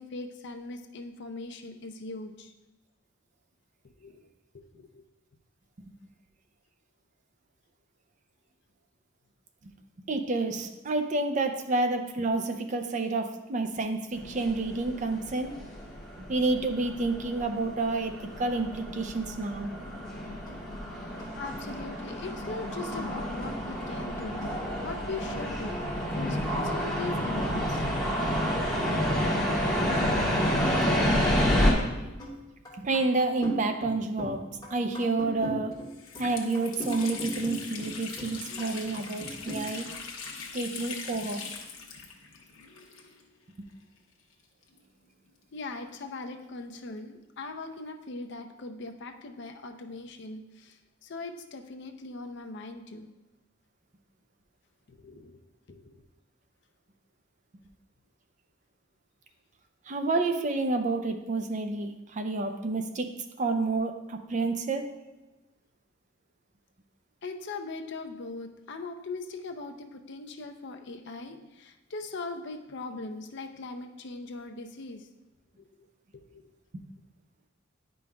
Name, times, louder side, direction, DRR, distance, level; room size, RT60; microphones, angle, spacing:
voice 1, 0.0-2.5 3.8-4.2 4.5-5.0 21.3-27.8 45.5-53.1 54.9-55.4 55.7-56.0 67.2-75.1 75.6-75.8 76.1-76.5, left 3 dB, 60° left, 5 dB, 0.6 m, -40 dB
voice 2, 10.1-15.5 16.2-19.7 29.3-29.4 32.8-34.4 34.7-35.8 36.2-39.9 40.5-41.4 59.9-65.1 76.7-76.8, right 3 dB, 40° right, 6 dB, 0.5 m, -29 dB
sound 1, 14.1-31.7, equal, 5° left, 1.4 m, -29 dB
sound 2, 19.9-20.0 20.2-25.9 26.2-27.9 29.7-29.9 30.2-31.9 32.2-32.4 32.7-34.4 34.6-38.3 38.6-39.6, equal, 20° left, 1.6 m, -40 dB
Water tap faucet, 35.2-35.3 35.7-43.4 43.7-43.8 44.6-46.2, left 5 dB, 90° left, 0.9 m, -42 dB
9.7 x 5.2 x 2.3 m, 1.1 s
head